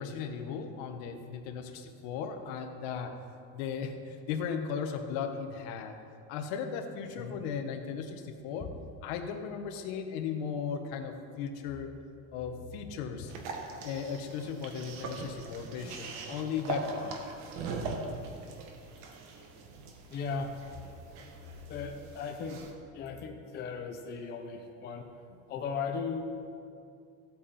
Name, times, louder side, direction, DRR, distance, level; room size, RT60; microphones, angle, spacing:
voice 1, 0.0-3.1 3.5-6.0 6.3-8.7 9.0-11.9 12.3-13.3 13.8-17.1, left 6 dB, 70° left, 6 dB, 1.3 m, -36 dB
sound 1, 13.3-22.7, right 4 dB, 60° right, 1.6 m, -41 dB
voice 2, 20.1-20.8 21.7-22.6 22.9-26.3, left 5 dB, 30° left, 3 dB, 0.8 m, -37 dB
16.0 x 8.4 x 4.3 m, 2.5 s
cardioid pair, 160°, 32 cm